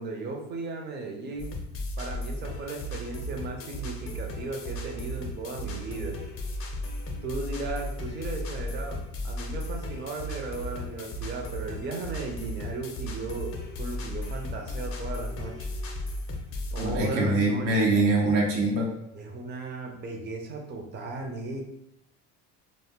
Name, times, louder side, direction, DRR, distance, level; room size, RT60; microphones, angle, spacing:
voice 1, 0.0-1.5 2.0-6.2 7.2-15.7 16.7-17.7 19.1-21.6, right 3 dB, 30° right, 2 dB, 0.5 m, -36 dB
sound 1, 1.4-17.0, left 1 dB, 35° left, 0.5 m, -35 dB
voice 2, 16.8-18.9, right 2 dB, 85° right, -1 dB, 0.8 m, -24 dB
2.0 x 2.0 x 3.5 m, 0.82 s
supercardioid pair, 90°, 37 cm